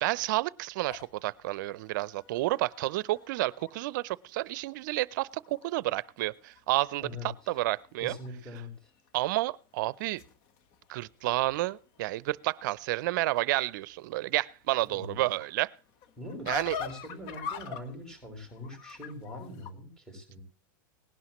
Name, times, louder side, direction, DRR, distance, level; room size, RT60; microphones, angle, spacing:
voice 1, 0.0-8.2 9.1-10.2 10.9-15.7 16.5-16.8, right 18 dB, 65° right, 0.5 m, -30 dB
sound 1, 0.8-4.0 4.5-4.6 4.9-5.7 6.0-8.3 8.6-9.1 9.7-19.7, left 7 dB, 50° left, 1.4 m, -45 dB
voice 2, 8.0-8.9 14.9-15.3 16.2-16.5 16.8-20.4, left 1 dB, 5° left, 5.9 m, -42 dB
19.5 x 11.0 x 3.1 m
supercardioid pair, 135°, 11 cm